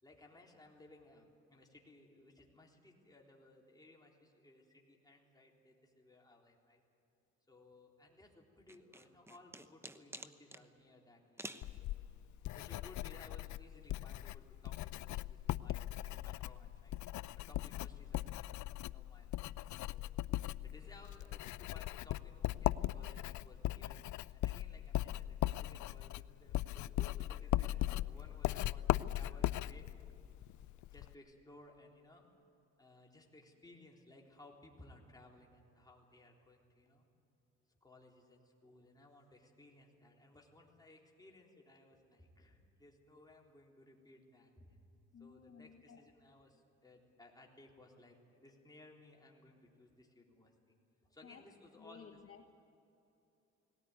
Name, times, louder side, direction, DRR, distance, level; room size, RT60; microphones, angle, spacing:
voice 1, 0.0-6.8 7.5-12.1 12.5-17.0 17.3-20.2 20.6-29.9 30.9-32.3 32.8-37.1 37.8-44.8 45.2-50.5 51.1-52.2, left 2 dB, 15° left, -1 dB, 3.7 m, -61 dB
sound 1, 8.7-10.6 11.4-11.7, right 1 dB, 10° right, 1.0 m, -49 dB
Writing, 11.6-31.1, left 15 dB, 75° left, 0.5 m, -39 dB
voice 2, 45.1-46.0 51.2-51.4 51.8-52.5, left 6 dB, 45° left, 4 dB, 1.3 m, -56 dB
19.0 x 18.0 x 9.6 m, 2.8 s
cardioid pair, 90°, 30 cm